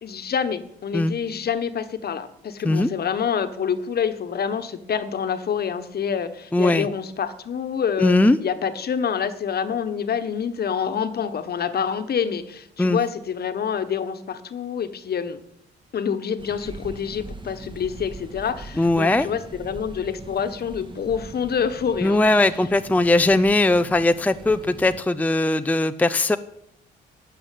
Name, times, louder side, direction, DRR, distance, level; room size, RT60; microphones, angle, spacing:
voice 1, 0.0-15.4 15.9-22.2, left 7 dB, 50° left, 10 dB, 1.4 m, -27 dB
voice 2, 6.5-6.9 8.0-8.4 12.8-13.0 18.8-19.3 22.0-26.4, left 2 dB, 10° left, 10 dB, 0.6 m, -19 dB
sound 1, 16.4-25.0, right 2 dB, 25° right, 1.9 m, -41 dB
12.5 x 7.7 x 9.3 m, 0.78 s
cardioid pair, 90°, 20 cm